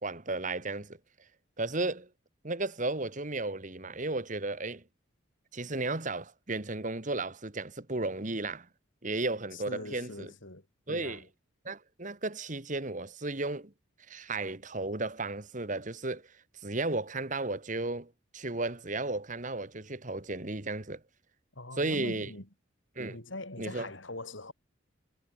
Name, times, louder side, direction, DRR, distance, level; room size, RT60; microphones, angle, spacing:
voice 1, 0.0-1.0 1.6-2.1 2.4-4.8 5.5-8.7 9.0-10.3 10.9-11.2 11.7-13.7 14.1-16.2 16.6-21.0 21.8-22.3 23.0-23.2 23.6-23.9, right 2 dB, 40° right, 1.9 m, -34 dB
voice 2, 9.5-11.2 21.5-22.5 23.1-24.5, left 2 dB, 75° left, 6.0 m, -42 dB
head